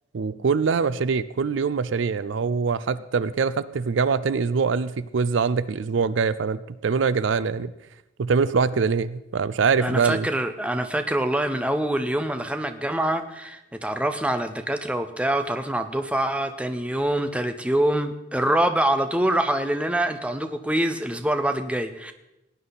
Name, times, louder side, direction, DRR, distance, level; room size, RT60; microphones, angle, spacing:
voice 1, 0.1-7.7 8.2-10.3, right 5 dB, 70° right, 16 dB, 0.4 m, -23 dB
voice 2, 9.8-22.1, right 1 dB, 5° right, 8 dB, 0.6 m, -25 dB
17.5 x 9.9 x 4.1 m, 0.91 s
head